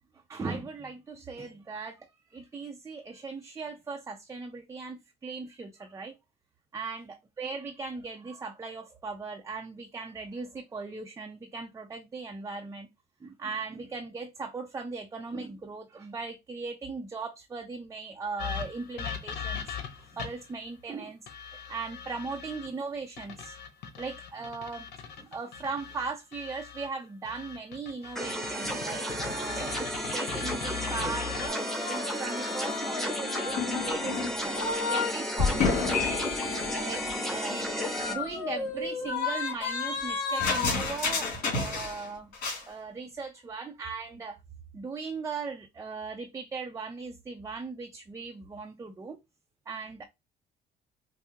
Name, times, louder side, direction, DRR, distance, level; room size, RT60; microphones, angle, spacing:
voice 1, 0.3-6.1 6.7-12.9 13.2-19.8 20.1-21.2 21.5-23.6 24.0-24.9 25.2-36.2 36.8-37.7 38.1-42.3 42.7-44.4 44.7-49.2 49.7-50.1, right 4 dB, 20° right, 0.5 m, -38 dB
sound 1, 18.4-20.5 21.3-22.7 23.2-26.9 27.2-31.5, left 7 dB, 80° left, 1.0 m, -39 dB
sound 2, 28.1-38.1, equal, ahead, 0.9 m, -33 dB
sound 3, 31.4-35.1 35.4-42.1 42.3-42.6, left 4 dB, 65° left, 2.2 m, -31 dB
5.5 x 2.0 x 2.8 m
cardioid pair, 110°, 17 cm